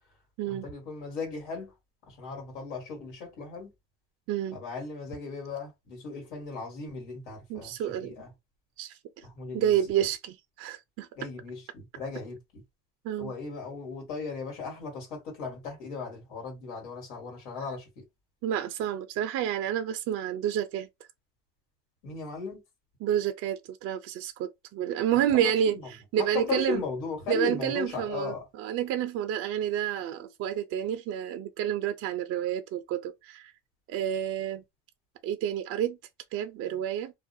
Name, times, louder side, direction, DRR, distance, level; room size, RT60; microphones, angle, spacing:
voice 1, 0.4-1.7 2.1-3.7 4.5-7.7 8.0-8.3 9.2-9.7 11.1-12.6 13.2-18.0 22.0-22.6 25.1-25.5 26.1-28.5, left 4 dB, 90° left, 1.4 m, -37 dB
voice 2, 7.5-8.2 8.8-9.0 9.5-11.1 13.0-13.3 18.4-20.9 23.0-26.8 27.3-33.5 33.9-34.6 35.2-36.0 36.3-37.1, right 10 dB, 45° right, 0.4 m, -29 dB
2.3 x 2.1 x 2.6 m
supercardioid pair, 105°, 35 cm